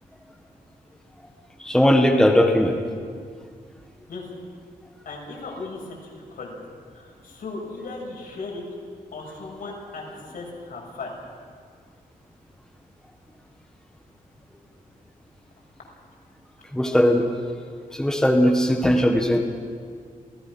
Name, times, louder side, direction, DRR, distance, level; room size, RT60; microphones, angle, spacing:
voice 1, 1.6-2.8 16.7-17.3 17.9-19.4, equal, 5° left, 2 dB, 1.5 m, -18 dB
voice 2, 5.0-6.6 6.9-8.6 9.1-11.2, left 3 dB, 75° left, -2 dB, 6.3 m, -37 dB
27.5 x 16.5 x 6.1 m, 2.1 s
wide cardioid pair, 135°, 15 cm